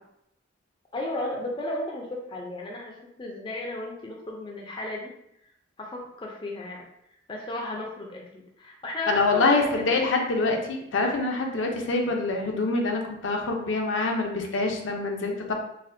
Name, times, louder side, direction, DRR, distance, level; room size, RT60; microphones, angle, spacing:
voice 1, 0.9-2.9 3.2-5.1 5.8-6.8 7.3-9.9, left 1 dB, 25° left, -1 dB, 0.4 m, -34 dB
voice 2, 9.1-15.5, left 3 dB, 75° left, 2 dB, 0.5 m, -25 dB
4.1 x 2.1 x 2.6 m, 0.78 s
head